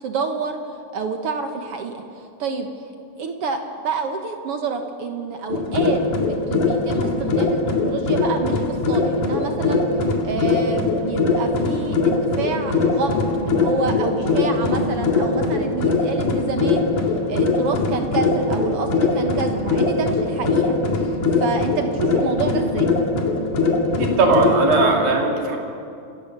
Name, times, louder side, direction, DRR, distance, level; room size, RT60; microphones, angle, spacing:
voice 1, 0.0-2.7 3.2-6.0 6.5-9.9 10.2-16.9 17.3-23.0, right 4 dB, 60° right, 5 dB, 1.5 m, -28 dB
sound 1, 5.5-25.0, left 3 dB, 65° left, 3.5 m, -21 dB
voice 2, 24.0-25.6, right 3 dB, 85° right, 1 dB, 4.4 m, -18 dB
28.5 x 17.0 x 6.7 m, 2.6 s
omnidirectional pair, 4.0 m